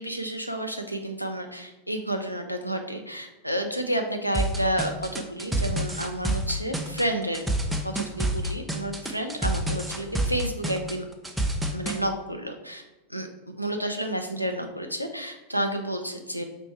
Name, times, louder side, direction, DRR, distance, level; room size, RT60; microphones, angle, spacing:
voice 1, 0.0-7.5 7.8-11.1 11.7-12.8 13.1-13.3 13.6-16.4, right 1 dB, 90° left, 5 dB, 0.5 m, -30 dB
sound 1, 4.3-12.0, right 1 dB, 5° right, 0.5 m, -28 dB
4.5 x 2.6 x 4.3 m, 1.1 s
figure-of-eight pair, 90°, 0 cm